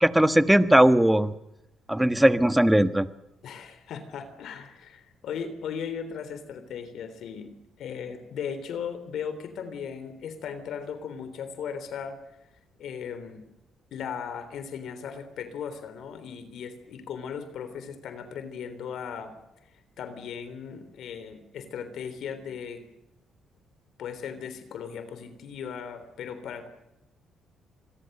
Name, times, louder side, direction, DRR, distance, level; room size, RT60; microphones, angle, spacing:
voice 1, 0.0-1.3 1.9-3.1, right 1 dB, 5° right, 11 dB, 1.4 m, -19 dB
voice 2, 3.4-7.5 7.8-12.4 12.8-13.4 13.9-19.3 19.6-22.8 24.0-26.7, left 7 dB, 75° left, 10 dB, 3.6 m, -37 dB
27.0 x 21.5 x 6.8 m, 0.91 s
cardioid pair, 90°, 0 cm